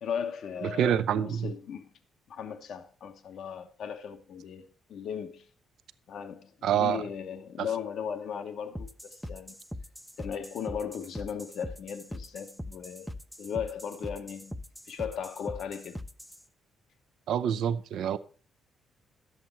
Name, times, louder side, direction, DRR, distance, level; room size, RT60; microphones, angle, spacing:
voice 1, 0.0-1.9 2.3-5.5 6.1-9.6 10.2-13.1 13.4-14.6 14.9-16.0, left 7 dB, 70° left, 1.0 m, -37 dB
voice 2, 0.6-1.5 6.6-7.1 7.6-7.7 17.3-18.2, right 9 dB, 75° right, 0.6 m, -27 dB
sound 1, 8.7-16.4, left 1 dB, ahead, 0.6 m, -41 dB
10.5 x 7.8 x 4.4 m
cardioid pair, 90°, 0 cm